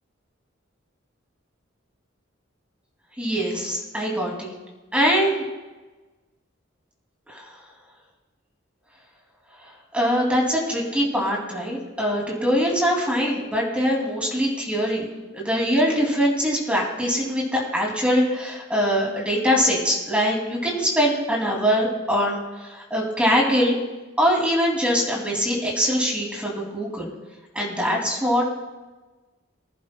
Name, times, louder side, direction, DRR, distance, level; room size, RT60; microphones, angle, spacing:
voice 1, 3.2-4.5 4.9-5.5 7.3-7.4 9.9-15.1 15.3-23.7 24.2-27.1 27.5-28.4, equal, 5° right, -2 dB, 2.4 m, -23 dB
22.5 x 11.0 x 2.2 m, 1.2 s
head